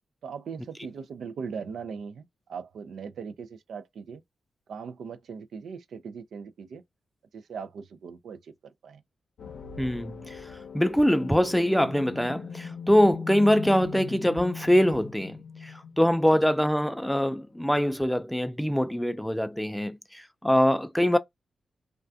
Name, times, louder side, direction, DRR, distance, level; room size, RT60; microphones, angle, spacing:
voice 1, 0.2-4.2 4.7-6.8 7.3-8.5 8.8-9.0 16.3-16.4, right 6 dB, 85° right, 0.3 m, -39 dB
sound 1, 9.4-17.1, left 6 dB, 80° left, 0.5 m, -40 dB
voice 2, 9.8-21.2, equal, 5° left, 0.3 m, -24 dB
2.3 x 2.2 x 2.5 m
cardioid pair, 70°, 0 cm